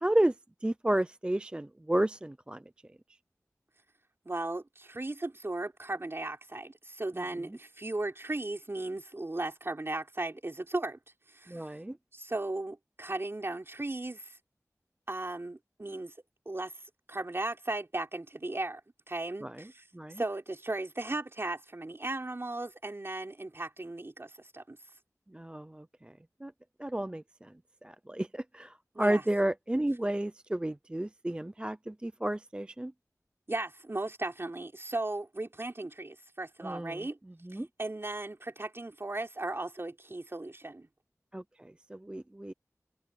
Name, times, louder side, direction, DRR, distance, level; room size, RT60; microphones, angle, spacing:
voice 1, 0.0-0.3 0.6-2.6 11.5-12.0 19.4-19.6 19.9-20.2 25.3-26.1 26.4-26.5 26.8-27.5 27.8-32.9 36.6-37.0 37.4-37.7 41.3-42.5, right 1 dB, 15° right, 0.4 m, -32 dB
voice 2, 4.3-11.0 11.3-11.7 12.1-14.4 15.1-16.1 16.5-16.7 17.1-18.8 19.1-19.8 20.2-24.8 28.9-29.2 33.5-37.2 37.8-40.9, right 2 dB, 45° right, 3.8 m, -36 dB
wide cardioid pair, 60°, 6 cm